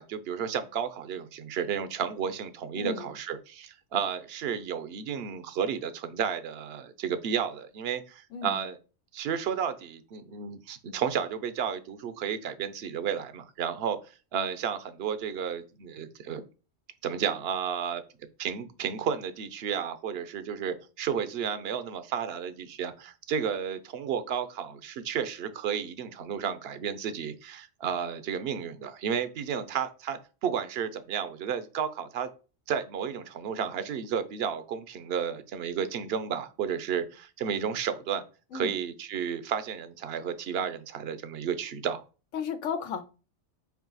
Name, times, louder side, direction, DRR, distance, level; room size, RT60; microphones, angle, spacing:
voice 1, 0.0-8.8 9.1-14.0 14.3-16.4 17.0-18.0 18.4-32.3 32.7-38.2 38.5-42.0, right 7 dB, 60° right, 0.9 m, -32 dB
voice 2, 2.7-3.1 8.3-8.6 38.5-38.8 42.3-43.0, left 6 dB, 90° left, 1.1 m, -34 dB
5.1 x 4.7 x 3.9 m
omnidirectional pair, 1.3 m